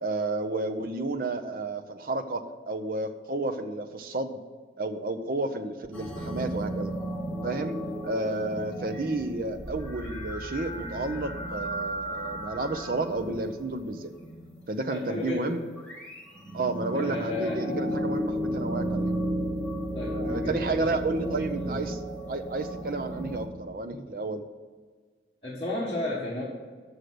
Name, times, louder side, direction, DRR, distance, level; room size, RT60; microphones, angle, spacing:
voice 1, 0.0-4.4 4.8-6.9 7.4-7.8 8.0-14.1 14.7-15.6 16.5-19.1 20.1-22.0 22.3-24.4, right 2 dB, 50° right, 6 dB, 0.6 m, -31 dB
sound 1, 5.9-14.6 15.6-23.4, equal, 10° left, 1.9 m, -34 dB
voice 2, 14.8-15.6 16.9-17.7 19.9-20.8 21.6-21.9 25.4-26.4, left 2 dB, 30° left, -8 dB, 1.5 m, -33 dB
6.6 x 6.4 x 7.7 m, 1.5 s
head